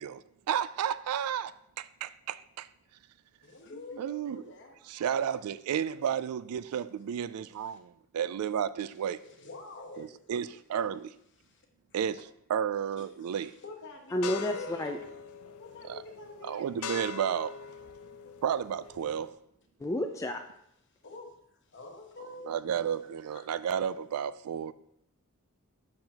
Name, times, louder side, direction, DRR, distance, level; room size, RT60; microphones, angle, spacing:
voice 1, 0.0-2.7 4.0-4.4 4.9-9.2 10.0-11.1 11.9-13.5 15.8-16.0 16.4-17.5 18.4-19.3 22.4-24.7, right 8 dB, 85° right, 0.3 m, -32 dB
voice 2, 3.4-4.8 5.3-5.4 7.6-7.8 9.2-10.3 11.4-11.6 13.0-15.0 15.6-17.4 21.0-21.3 21.6-23.9, left 2 dB, 55° left, 1.0 m, -47 dB
voice 3, 14.1-15.0 19.8-20.4, left 1 dB, 15° left, 0.3 m, -31 dB
sound 1, 14.2-19.3, left 6 dB, 75° left, 0.5 m, -43 dB
6.6 x 6.0 x 2.9 m
head